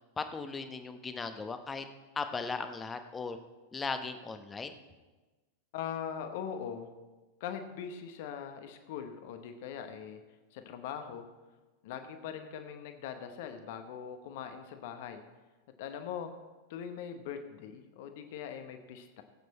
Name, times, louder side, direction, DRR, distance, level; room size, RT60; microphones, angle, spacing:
voice 1, 0.2-1.8 2.2-3.4 3.7-4.8, left 4 dB, 15° left, 8 dB, 1.0 m, -37 dB
voice 2, 5.7-6.9 7.4-10.2 10.5-11.2 11.8-15.2 15.8-16.3 16.7-19.2, left 8 dB, 50° left, 7 dB, 1.1 m, -41 dB
16.5 x 8.2 x 4.2 m, 1.2 s
figure-of-eight pair, 90°, 0 cm